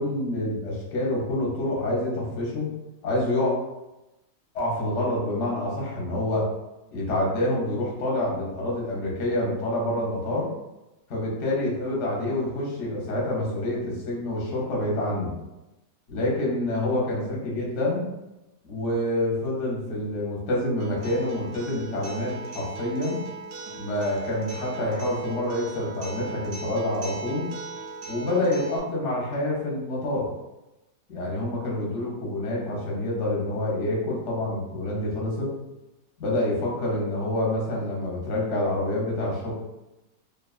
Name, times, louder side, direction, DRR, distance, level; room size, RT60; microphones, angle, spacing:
voice 1, 0.0-2.7 3.0-3.5 4.5-6.5 6.9-10.5 11.1-15.3 16.1-18.1 18.6-23.2 23.8-27.5 28.1-30.3 31.1-35.5 36.2-39.5, left 1 dB, 55° left, -4 dB, 0.9 m, -27 dB
Acoustic guitar, 20.8-28.8, right 3 dB, 70° right, 0.8 m, -38 dB
2.7 x 2.3 x 2.3 m, 0.97 s
omnidirectional pair, 1.8 m